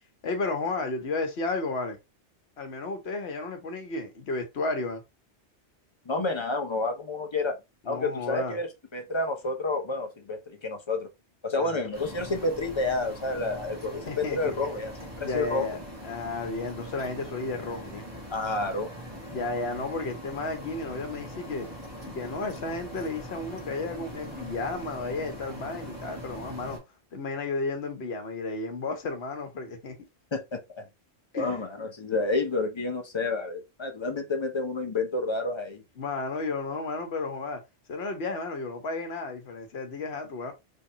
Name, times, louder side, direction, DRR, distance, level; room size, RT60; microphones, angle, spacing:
voice 1, 0.2-2.0 2.6-5.0 7.9-8.6 11.5-11.8 14.1-14.5 15.2-18.1 19.3-21.7 22.0-26.8 27.1-30.0 31.3-31.6 36.0-37.6 37.9-40.5, left 3 dB, 70° left, 1.1 m, -33 dB
voice 2, 6.1-7.6 7.9-11.1 11.4-15.7 18.3-18.9 30.3-30.8 31.3-35.8, left 3 dB, 30° left, 0.7 m, -30 dB
sound 1, 11.9-26.8, equal, 25° right, 1.6 m, -42 dB
3.4 x 3.2 x 2.7 m
omnidirectional pair, 1.1 m